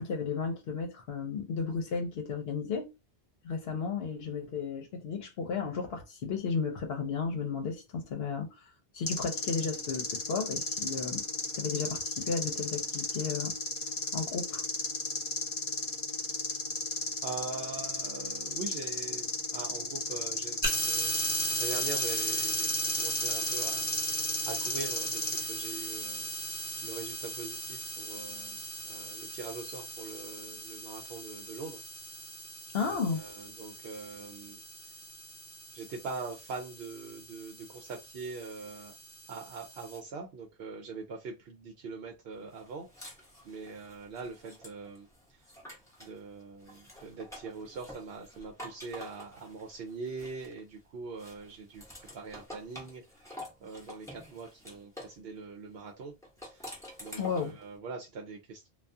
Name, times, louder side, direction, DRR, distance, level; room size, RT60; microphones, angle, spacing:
voice 1, 0.0-2.9 3.4-11.3 11.5-13.5 14.1-14.6 32.7-33.2 57.1-57.6, left 5 dB, 70° left, 0.9 m, -34 dB
sound 1, 9.1-25.4, left 3 dB, 50° left, 1.0 m, -35 dB
voice 2, 17.2-21.2 21.6-24.2 24.5-26.3 26.8-31.8 32.8-34.6 35.7-38.9 39.3-43.1 43.4-45.5 46.0-53.3 53.6-56.2 56.4-56.7 57.0-58.7, right 4 dB, 75° right, 0.8 m, -43 dB
sound 2, 20.6-40.0, right 1 dB, 30° right, 1.1 m, -37 dB
sound 3, 42.5-46.2 46.6-50.8 51.2-55.2 56.2-57.6, left 1 dB, 5° left, 0.7 m, -48 dB
2.3 x 2.3 x 2.6 m
omnidirectional pair, 1.1 m